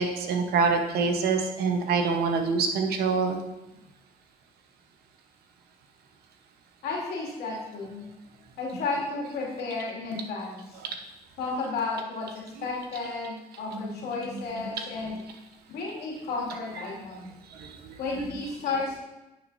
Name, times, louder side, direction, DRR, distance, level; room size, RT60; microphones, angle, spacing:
voice 1, 0.0-3.4 13.7-13.9 14.3-14.7 17.6-17.7, right 4 dB, 80° right, 4 dB, 1.1 m, -26 dB
voice 2, 6.8-8.0 8.6-10.7 11.4-12.3 12.6-15.2 15.7-17.3 18.0-19.0, left 3 dB, 80° left, -3 dB, 2.5 m, -32 dB
10.5 x 6.5 x 2.7 m, 1.0 s
cardioid pair, 80°, 16 cm